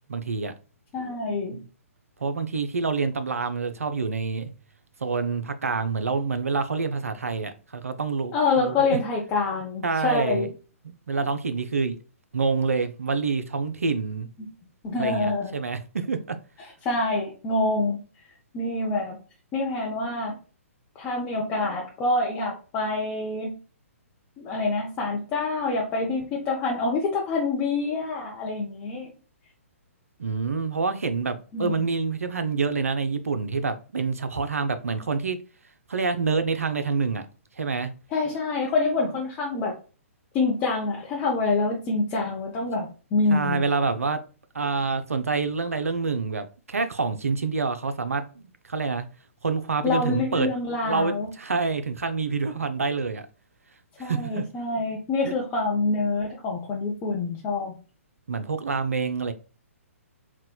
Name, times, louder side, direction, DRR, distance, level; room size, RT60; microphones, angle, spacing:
voice 1, 0.1-0.5 1.5-1.6 2.2-4.5 5.0-9.0 9.8-10.5 10.8-12.0 12.3-14.3 15.0-16.4 30.2-35.4 35.9-37.2 37.6-37.9 43.3-44.2 44.5-48.2 48.7-49.1 49.4-50.5 50.8-53.3 54.0-54.4 55.2-55.3 58.3-59.3, right 4 dB, 75° right, 0.4 m, -27 dB
voice 2, 0.9-1.6 8.3-10.5 14.8-15.6 16.6-18.0 18.5-19.2 19.5-20.4 21.0-23.6 24.4-29.1 31.5-31.9 38.1-39.8 40.3-43.6 49.8-51.3 54.0-57.8, left 3 dB, 20° left, 0.5 m, -26 dB
4.2 x 2.1 x 2.2 m
figure-of-eight pair, 125°, 8 cm